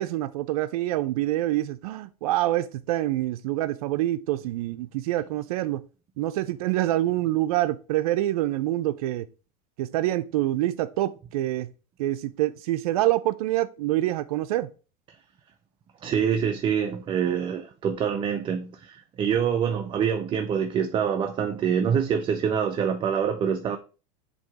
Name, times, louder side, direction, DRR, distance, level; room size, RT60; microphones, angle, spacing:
voice 1, 0.0-5.8 6.2-9.3 9.8-11.7 12.0-14.7, right 15 dB, 80° right, 0.5 m, -26 dB
voice 2, 16.0-23.8, right 7 dB, 25° right, 0.5 m, -25 dB
7.5 x 2.8 x 4.6 m
supercardioid pair, 140°, 19 cm